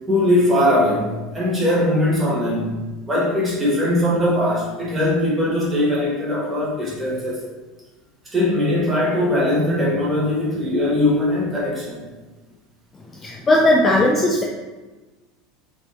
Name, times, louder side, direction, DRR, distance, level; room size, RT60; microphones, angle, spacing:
voice 1, 0.1-2.8 3.0-7.4 8.3-12.1, left 1 dB, 10° right, -7 dB, 1.3 m, -20 dB
voice 2, 13.0-14.4, left 1 dB, 15° left, -2 dB, 0.4 m, -17 dB
3.8 x 3.5 x 3.3 m, 1.2 s
supercardioid pair, 160°, 0 cm